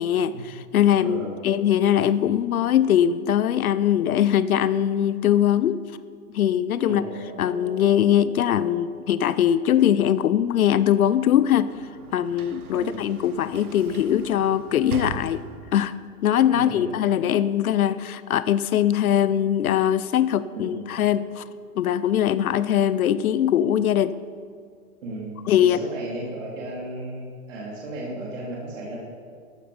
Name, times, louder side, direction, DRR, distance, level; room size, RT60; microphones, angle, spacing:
voice 1, 0.0-5.8 6.3-7.0 7.4-11.7 12.1-15.4 15.7-16.0 16.2-21.4 21.8-24.2 25.4-25.8, left 10 dB, 75° left, 15 dB, 0.7 m, -21 dB
voice 2, 1.0-1.4 6.8-7.2 12.7-13.0 16.5-17.0 20.6-20.9 25.0-25.3 25.6-29.0, right 1 dB, 60° right, -4 dB, 3.2 m, -34 dB
sound 1, 6.9-12.8 13.2-13.4 13.9-14.0, right 3 dB, 40° right, 3.7 m, -47 dB
Sliding door / Slam, 11.2-15.9, right 5 dB, 80° right, 1.3 m, -39 dB
13.5 x 12.0 x 5.1 m, 2.1 s
hypercardioid pair, 140°, 43 cm